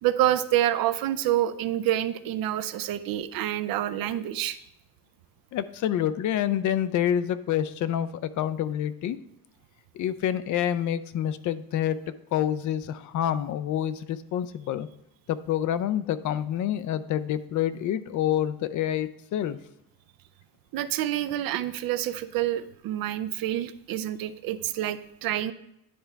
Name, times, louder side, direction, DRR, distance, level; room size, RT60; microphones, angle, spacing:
voice 1, 0.0-4.6 20.7-25.5, right 12 dB, 70° right, 13 dB, 0.5 m, -27 dB
voice 2, 5.5-9.2 9.9-12.0 12.3-14.9 15.3-19.6, left 10 dB, 55° left, 14 dB, 0.5 m, -27 dB
10.0 x 4.3 x 3.4 m, 0.80 s
cardioid pair, 110°, 36 cm